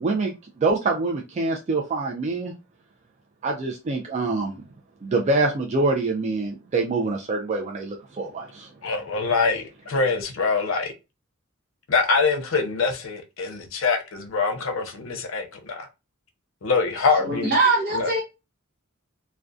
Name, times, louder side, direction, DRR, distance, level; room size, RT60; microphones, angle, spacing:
voice 1, 0.0-2.5 3.4-4.6 5.0-8.7, right 3 dB, 35° right, 0.3 m, -25 dB
voice 2, 8.8-10.9 11.9-15.9 16.6-17.5 17.9-18.1, left 4 dB, 80° left, 0.5 m, -24 dB
voice 3, 17.1-18.2, right 3 dB, 50° right, 0.7 m, -22 dB
2.3 x 2.1 x 2.5 m
head